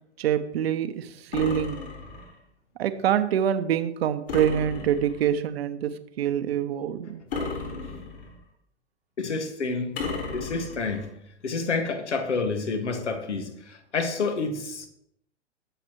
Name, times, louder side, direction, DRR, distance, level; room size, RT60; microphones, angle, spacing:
voice 1, 0.2-1.8 2.8-7.2, right 9 dB, 60° right, 1.1 m, -25 dB
sound 1, 1.3-2.4 4.3-5.3 7.3-8.4 10.0-11.0, left 4 dB, 60° left, 4.5 m, -34 dB
voice 2, 9.2-10.0 10.3-11.1 11.4-14.9, left 4 dB, 75° left, 2.0 m, -29 dB
20.0 x 7.1 x 3.1 m
figure-of-eight pair, 110°, 35 cm